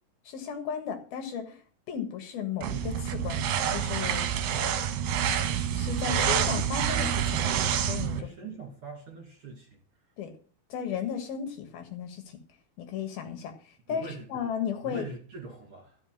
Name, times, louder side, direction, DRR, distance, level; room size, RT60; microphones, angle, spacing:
voice 1, 0.3-1.6 1.9-3.5 3.7-4.3 5.7-7.4 7.9-8.2 8.4-8.5 10.2-10.3 10.7-12.4 12.8-13.5 13.9-15.1, left 8 dB, 65° left, 6 dB, 3.2 m, -34 dB
sound 1, 2.6-8.2, right 8 dB, 70° right, 2.5 m, -27 dB
voice 2, 8.1-9.8 13.9-14.3 14.8-16.0, right 3 dB, 40° right, 1 dB, 2.7 m, -42 dB
14.0 x 5.7 x 7.3 m, 0.41 s
omnidirectional pair, 4.8 m